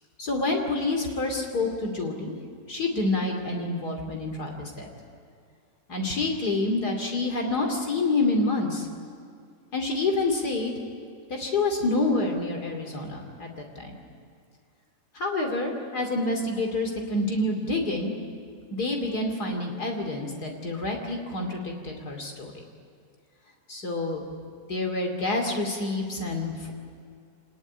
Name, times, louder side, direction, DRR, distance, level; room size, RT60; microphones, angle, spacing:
voice 1, 0.2-2.4 2.7-4.9 5.9-8.9 9.7-10.7 11.3-14.0 15.1-18.1 18.7-22.5 23.7-24.2 24.7-26.7, left 2 dB, 65° left, 1 dB, 3.2 m, -28 dB
25.5 x 20.0 x 9.9 m, 2.3 s
omnidirectional pair, 1.9 m